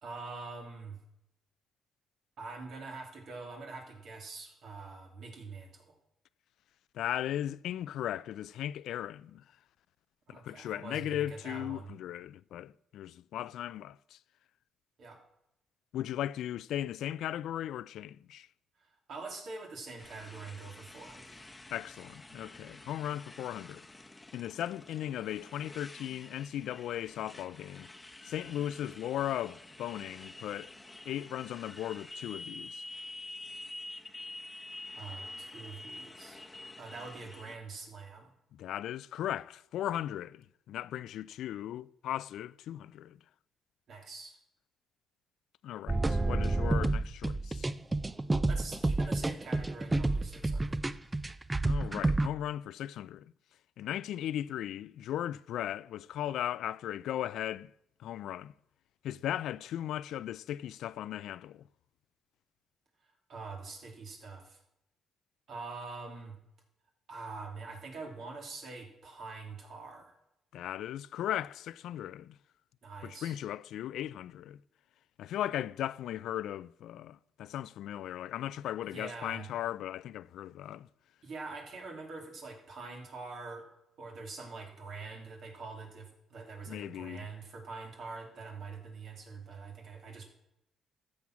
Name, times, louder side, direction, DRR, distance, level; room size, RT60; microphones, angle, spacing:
voice 1, 0.0-1.0 2.4-5.9 10.3-11.9 15.0-15.2 18.8-21.5 34.9-36.4 36.8-38.3 43.9-44.4 48.5-50.8 63.3-64.6 65.5-66.4 67.1-70.2 72.8-73.4 78.9-79.5 81.2-83.7 84.0-90.3, right 4 dB, 65° right, 3.0 m, -44 dB
voice 2, 6.9-9.4 10.3-14.2 15.9-18.5 21.7-23.9 24.3-27.9 28.3-30.7 31.1-32.8 38.5-43.2 45.6-47.7 51.6-53.3 53.8-57.7 58.0-58.5 59.0-61.6 70.5-72.4 73.0-74.6 75.2-80.9 86.7-87.3, left 12 dB, 80° left, 0.3 m, -37 dB
Motorcycle, 20.0-37.6, left 2 dB, 15° left, 0.9 m, -48 dB
sound 1, 45.9-52.3, right 2 dB, 15° right, 0.5 m, -29 dB
13.5 x 7.2 x 6.1 m
cardioid pair, 90°, 0 cm